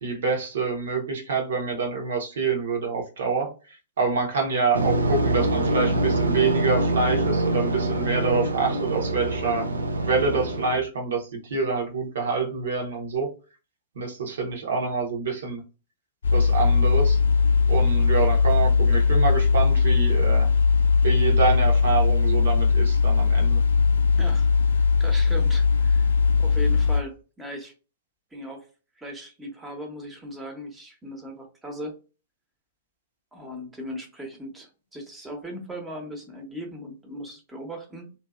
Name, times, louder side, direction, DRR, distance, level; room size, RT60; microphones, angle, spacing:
voice 1, 0.0-3.5 4.0-9.7 10.0-13.3 13.9-15.6 16.3-17.2 17.7-20.5 21.0-23.6, right 4 dB, 65° right, 1.1 m, -26 dB
sound 1, 4.7-10.8, right 1 dB, 80° right, 0.5 m, -25 dB
sound 2, 16.2-27.0, left 5 dB, 70° left, 0.5 m, -20 dB
voice 2, 24.2-26.1 26.4-27.7 28.3-28.7 29.0-31.9 33.3-38.1, equal, 10° right, 1.0 m, -38 dB
2.8 x 2.7 x 2.3 m
figure-of-eight pair, 105°, 0 cm